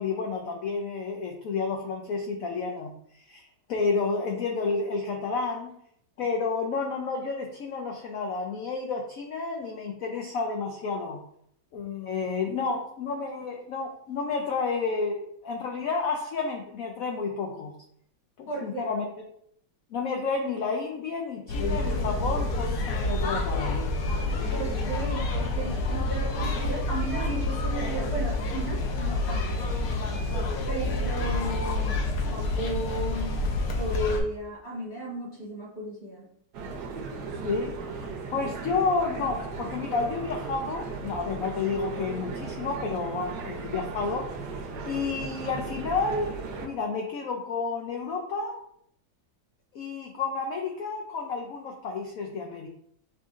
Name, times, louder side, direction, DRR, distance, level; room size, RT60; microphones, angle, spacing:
voice 1, 0.0-2.9 3.3-5.7 6.2-11.2 11.7-17.7 18.4-19.3 19.9-23.8 37.4-44.6 44.8-46.3 46.6-48.6 49.7-52.7, left 4 dB, 85° left, 1 dB, 0.7 m, -30 dB
voice 2, 18.5-18.8 24.5-29.7 30.7-33.4 33.8-36.3, right 2 dB, 45° left, -7 dB, 2.1 m, -35 dB
sound 1, 21.5-34.2, left 2 dB, 65° left, 0.9 m, -28 dB
sound 2, 36.5-46.7, right 4 dB, 70° right, 1.1 m, -37 dB
7.0 x 2.6 x 2.4 m, 0.70 s
omnidirectional pair, 2.1 m